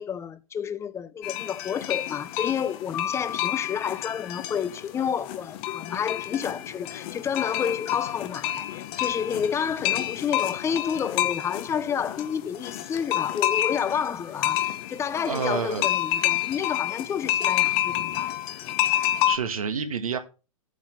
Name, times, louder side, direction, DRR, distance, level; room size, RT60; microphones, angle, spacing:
voice 1, 0.0-18.3, left 7 dB, 15° left, 0.7 m, -30 dB
sound 1, 1.2-19.4, left 13 dB, 40° left, 1.2 m, -29 dB
sound 2, 2.9-5.1, left 8 dB, 65° left, 1.8 m, -37 dB
voice 2, 15.2-15.9 19.3-20.2, right 6 dB, 85° right, 1.6 m, -28 dB
8.4 x 6.0 x 5.9 m
hypercardioid pair, 120°, 18 cm